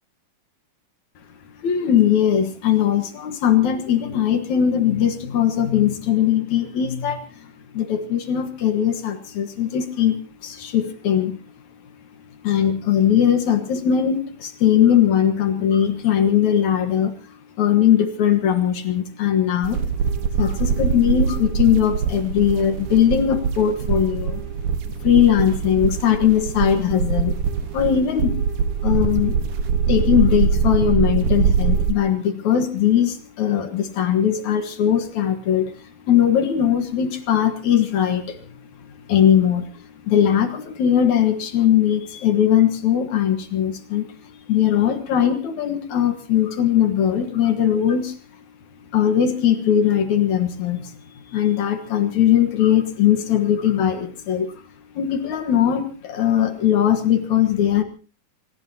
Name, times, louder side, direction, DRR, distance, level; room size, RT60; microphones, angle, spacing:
voice 1, 1.6-11.4 12.4-19.8 20.4-24.7 25.0-28.4 28.8-29.4 29.9-38.4 39.1-48.2 48.9-50.9 51.3-54.6 55.0-57.8, left 9 dB, 65° left, 8 dB, 2.7 m, -20 dB
sound 1, 19.6-31.9, right 6 dB, 70° right, 2.6 m, -23 dB
26.0 x 18.5 x 2.8 m, 0.36 s
omnidirectional pair, 3.9 m